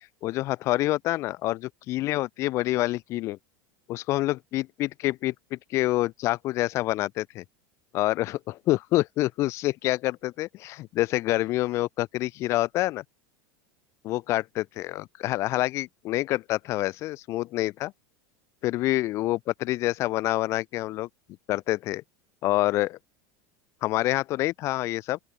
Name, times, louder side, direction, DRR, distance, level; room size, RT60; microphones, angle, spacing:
voice 1, 0.2-3.4 3.9-7.4 7.9-13.0 14.0-17.9 18.6-21.1 21.5-22.0 22.4-23.0 23.8-25.2, left 17 dB, 30° left, 0.3 m, -27 dB
open air
supercardioid pair, 170°, 10 cm